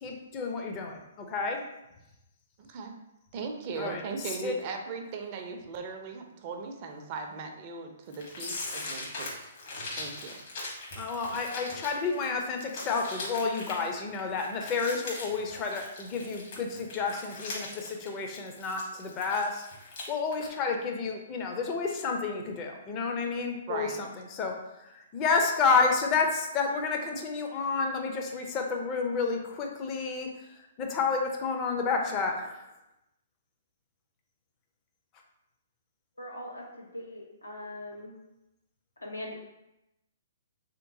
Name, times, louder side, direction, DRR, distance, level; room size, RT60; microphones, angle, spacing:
voice 1, 0.0-1.6 3.8-4.5 10.9-19.7 20.1-30.3 30.8-32.7, left 4 dB, 30° left, 2 dB, 0.5 m, -30 dB
voice 2, 2.6-3.0 3.3-9.5 10.0-10.4 23.7-24.0, right 4 dB, 40° right, 3 dB, 0.5 m, -38 dB
sound 1, 8.1-20.1 20.3-20.5, left 2 dB, 50° left, 1.1 m, -40 dB
voice 3, 36.2-38.2 39.0-39.3, left 1 dB, 90° left, -2 dB, 0.8 m, -41 dB
3.3 x 2.9 x 2.6 m, 0.90 s
figure-of-eight pair, 125°, 0 cm